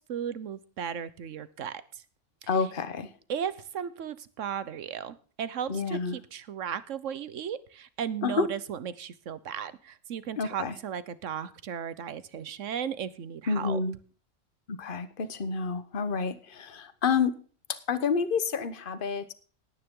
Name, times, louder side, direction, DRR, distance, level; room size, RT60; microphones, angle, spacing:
voice 1, 0.1-2.0 2.4-2.5 3.3-13.8, right 8 dB, 80° right, 16 dB, 1.3 m, -36 dB
voice 2, 2.5-3.1 5.7-6.2 8.2-8.5 10.4-10.7 13.5-14.0 14.7-17.4 17.7-19.3, left 5 dB, 45° left, 13 dB, 1.2 m, -29 dB
18.0 x 9.7 x 3.8 m, 0.41 s
omnidirectional pair, 1.3 m